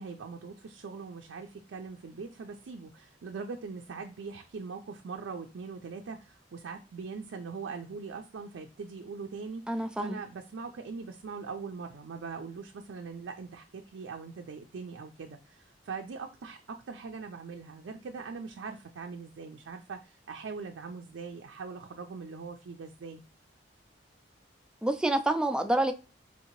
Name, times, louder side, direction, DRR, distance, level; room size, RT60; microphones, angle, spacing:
voice 1, 0.0-23.2, right 5 dB, 85° right, 0.4 m, -41 dB
voice 2, 9.7-10.2 24.8-25.9, right 1 dB, 5° right, 0.3 m, -27 dB
4.4 x 2.7 x 2.9 m
head